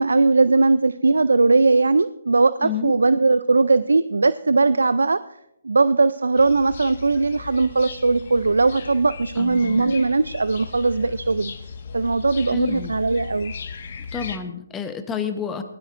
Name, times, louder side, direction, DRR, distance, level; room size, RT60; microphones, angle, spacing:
voice 1, 0.0-5.2 5.6-11.5 11.9-13.5, right 3 dB, 85° right, 15 dB, 0.4 m, -19 dB
voice 2, 2.6-2.9 9.4-10.0 12.5-12.9 14.1-15.6, left 7 dB, 15° left, 8 dB, 1.0 m, -29 dB
sound 1, 6.4-14.4, left 5 dB, 55° left, 1.5 m, -37 dB
20.0 x 13.0 x 2.5 m, 0.81 s
hypercardioid pair, 150°, 0 cm